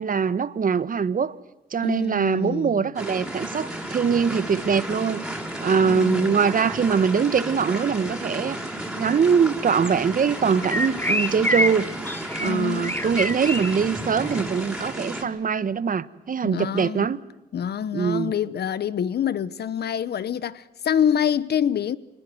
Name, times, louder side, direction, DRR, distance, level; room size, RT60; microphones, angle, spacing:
voice 1, 0.0-1.4 1.7-5.2 5.6-8.6 9.0-11.9 12.4-17.2 17.9-18.3, right 6 dB, 50° right, 1.3 m, -22 dB
voice 2, 1.8-2.9 5.7-6.4 12.4-12.9 16.4-17.1 17.5-22.0, left 9 dB, 70° left, 1.0 m, -26 dB
sound 1, 3.0-15.2, right 1 dB, 5° right, 7.2 m, -33 dB
sound 2, 9.8-9.9 10.6-11.7 12.1-12.5 12.8-13.8 14.3-14.5, left 1 dB, 10° left, 2.9 m, -26 dB
26.0 x 20.0 x 7.9 m
cardioid pair, 70°, 17 cm